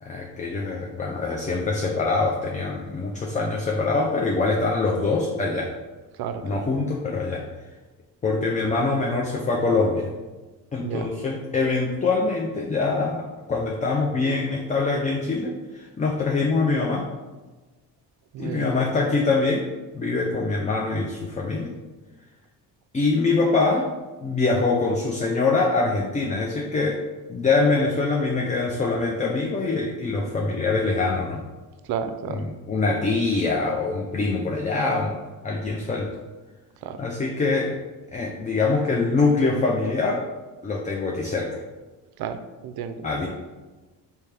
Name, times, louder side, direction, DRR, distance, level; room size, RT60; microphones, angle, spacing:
voice 1, 0.0-5.7 6.4-7.4 8.2-10.1 10.7-17.1 18.4-19.7 19.9-21.7 22.9-23.9 24.2-27.0 27.3-31.4 32.3-35.1 35.4-36.1 37.0-37.8 38.1-40.2 40.6-41.6 43.0-43.3, left 3 dB, 20° left, 0 dB, 0.4 m, -24 dB
voice 2, 18.3-18.8 31.9-32.4 36.8-37.0 42.2-43.0, right 7 dB, 55° right, 9 dB, 0.5 m, -31 dB
3.1 x 2.8 x 3.4 m, 1.2 s
supercardioid pair, 55°, 46 cm